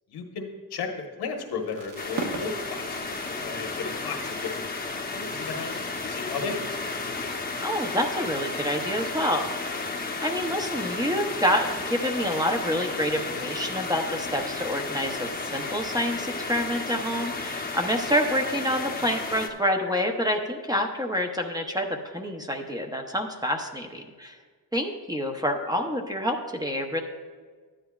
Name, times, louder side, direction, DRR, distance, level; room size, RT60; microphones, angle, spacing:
voice 1, 0.1-0.9 1.2-6.7, left 5 dB, 75° left, 3 dB, 1.4 m, -35 dB
Fireworks, 1.3-16.5 16.8-16.9 17.1-17.4, right 3 dB, 50° right, 1.2 m, -44 dB
sound 1, 2.0-19.5, left 3 dB, 25° left, 0.8 m, -33 dB
voice 2, 7.6-9.9 10.2-24.4 24.7-27.0, equal, 10° right, 3 dB, 0.7 m, -27 dB
14.0 x 9.9 x 2.4 m, 1.5 s
cardioid pair, 130°, 39 cm